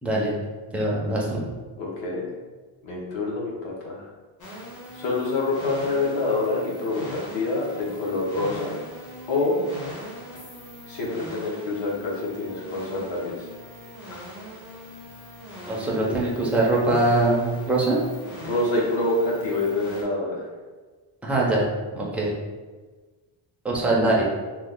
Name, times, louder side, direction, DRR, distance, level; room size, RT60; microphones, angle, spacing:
voice 1, 0.0-0.3 0.7-1.4 15.7-18.0 21.2-22.4 23.6-24.2, right 2 dB, 5° right, -4 dB, 0.3 m, -22 dB
voice 2, 1.8-2.3 2.8-4.0 4.9-8.7 9.3-9.6 10.9-13.3 18.4-20.4, left 2 dB, 70° left, -3 dB, 1.0 m, -26 dB
sound 1, 4.4-20.0, equal, 40° left, 0.8 m, -41 dB
3.0 x 2.0 x 3.6 m, 1.3 s
cardioid pair, 170°, 47 cm